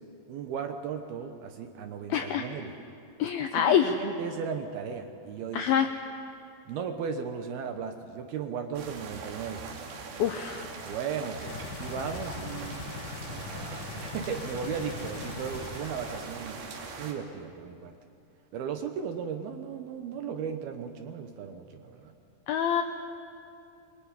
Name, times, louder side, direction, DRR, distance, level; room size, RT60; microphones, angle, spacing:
voice 1, 0.3-2.8 3.2-5.9 6.7-9.6 10.9-12.8 13.2-16.6 17.0-18.0 18.5-22.1, right 7 dB, 70° right, 6 dB, 2.6 m, -36 dB
voice 2, 2.1-2.4 3.2-3.9 5.5-5.9 10.2-10.7 22.5-22.8, left 9 dB, 80° left, 6 dB, 2.2 m, -25 dB
sound 1, 8.8-17.1, right 4 dB, 85° right, 4.9 m, -41 dB
sound 2, 11.4-16.4 16.7-16.8, left 6 dB, 60° left, 2.4 m, -41 dB
24.0 x 23.5 x 9.8 m, 2.5 s
omnidirectional pair, 5.4 m